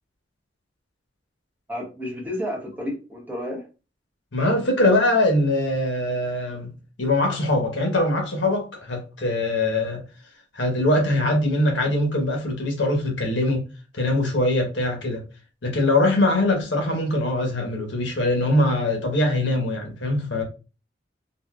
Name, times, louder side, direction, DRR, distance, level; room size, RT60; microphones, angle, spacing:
voice 1, 1.7-3.6, left 1 dB, 10° right, 1.0 m, -31 dB
voice 2, 4.3-6.7 7.0-10.0 10.5-13.6 13.9-15.2 15.6-20.4, left 1 dB, 80° left, 1.0 m, -22 dB
3.9 x 2.2 x 2.3 m
head